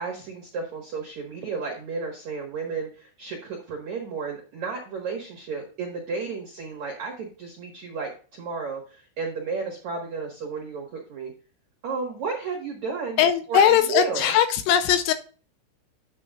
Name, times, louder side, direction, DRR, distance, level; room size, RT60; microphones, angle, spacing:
voice 1, 0.0-11.3 11.8-13.2 13.5-14.3, right 4 dB, 85° right, 1.6 m, -33 dB
voice 2, 13.2-15.1, left 9 dB, 90° left, 3.3 m, -20 dB
9.6 x 8.3 x 2.4 m
omnidirectional pair, 6.0 m